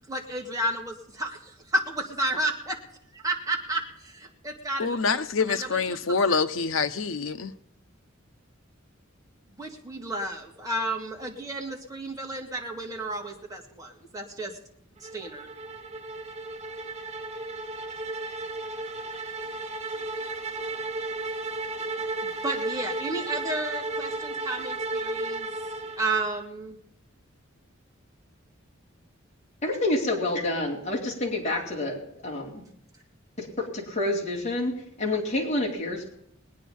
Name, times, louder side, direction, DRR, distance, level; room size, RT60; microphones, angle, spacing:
voice 1, 0.1-2.8 3.1-5.2 5.5-6.4 9.5-14.6 15.0-15.5 22.4-25.5 26.0-26.8, right 1 dB, 20° right, 2.8 m, -32 dB
voice 2, 4.8-7.5, left 4 dB, 90° left, 0.9 m, -26 dB
sound 1, 15.0-26.4, right 2 dB, 35° right, 2.0 m, -34 dB
voice 3, 29.6-32.6 33.4-36.1, left 2 dB, 35° left, 4.1 m, -28 dB
21.0 x 9.5 x 5.4 m
head